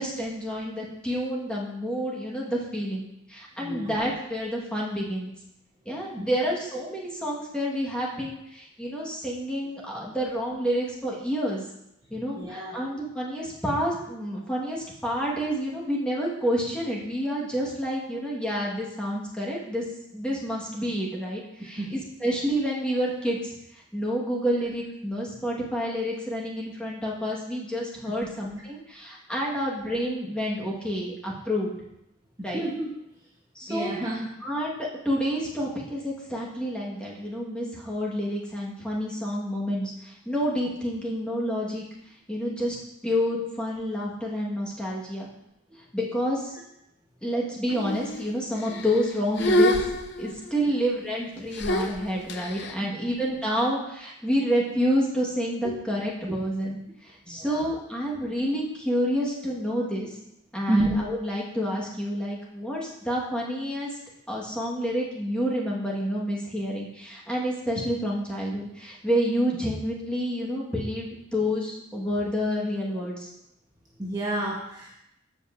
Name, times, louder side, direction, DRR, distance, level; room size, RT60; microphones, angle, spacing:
voice 1, 0.0-5.3 5.8-11.6 12.1-19.8 20.1-23.5 23.9-31.7 32.4-32.6 33.5-33.9 34.4-41.8 42.3-42.8 43.0-45.3 45.9-46.6 47.2-49.7 50.2-60.2 60.5-63.9 64.3-73.3, equal, 5° left, -5 dB, 1.4 m, -29 dB
voice 2, 3.6-3.9 6.2-6.3 12.3-12.8 21.8-21.9 32.5-32.9 33.7-34.3 53.0-53.1 55.6-55.8 56.3-56.4 57.3-57.7 60.7-61.0 74.0-74.9, right 1 dB, 20° right, -4 dB, 1.0 m, -29 dB
sound 1, 47.7-48.3 48.6-49.1 49.4-50.6 51.5-52.7, left 1 dB, 55° left, 0.6 m, -26 dB
14.5 x 5.3 x 2.5 m, 0.81 s
head